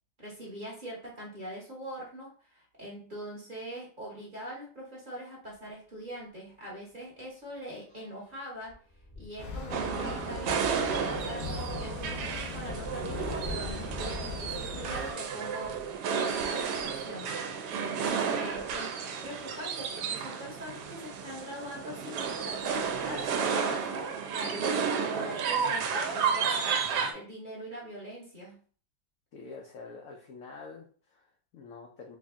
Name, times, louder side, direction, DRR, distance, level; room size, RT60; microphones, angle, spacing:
voice 1, 0.2-8.8 9.2-15.8 16.1-17.3 17.8-18.9 19.2-26.8 27.1-28.6, equal, 35° right, -4 dB, 0.8 m, -43 dB
sound 1, 5.5-5.7 6.1-6.2 6.5-16.0 16.7-18.0 18.7-18.8 19.1-19.2 20.9-21.0 21.6-21.9 22.3-23.5, left 2 dB, 25° left, 0.4 m, -49 dB
sound 2, 9.4-15.1, left 4 dB, 55° left, 0.9 m, -39 dB
sound 3, 9.7-27.1, right 6 dB, 75° right, 1.1 m, -32 dB
voice 2, 29.3-32.2, left 4 dB, 80° left, 2 dB, 0.7 m, -47 dB
3.2 x 2.6 x 3.5 m, 0.43 s
omnidirectional pair, 2.0 m